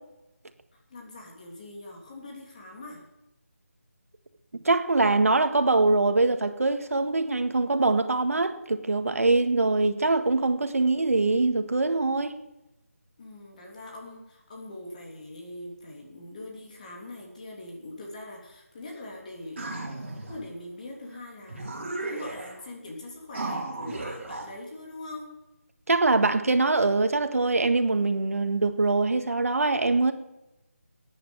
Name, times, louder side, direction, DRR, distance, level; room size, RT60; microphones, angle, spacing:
voice 1, 0.7-3.0 13.2-19.9 20.2-25.4, left 2 dB, 30° left, 3.0 m, -42 dB
voice 2, 4.6-12.3 25.9-30.1, right 3 dB, 70° right, 1.7 m, -23 dB
sound 1, 19.6-20.4 21.1-21.2 21.5-22.6 23.3-24.5, right 2 dB, 50° right, 4.1 m, -35 dB
14.5 x 9.7 x 8.0 m
figure-of-eight pair, 170°, 8 cm